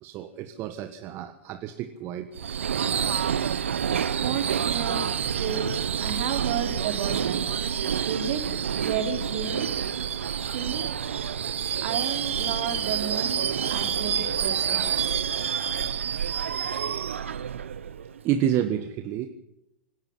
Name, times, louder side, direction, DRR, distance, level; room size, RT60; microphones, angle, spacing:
voice 1, 0.0-2.3 15.1-15.3 18.2-19.3, right 10 dB, 40° right, 8 dB, 1.6 m, -29 dB
Subway metro underground / Screech, 2.4-18.3, right 8 dB, 85° right, 1.0 m, -28 dB
voice 2, 4.2-5.1 5.4-5.7 6.0-7.4 8.0-8.4 8.8-9.7 10.5-10.8 11.8-13.3 13.7-15.0, right 8 dB, 60° right, 5 dB, 4.0 m, -31 dB
25.5 x 11.5 x 9.9 m, 0.87 s
hypercardioid pair, 110°, 7 cm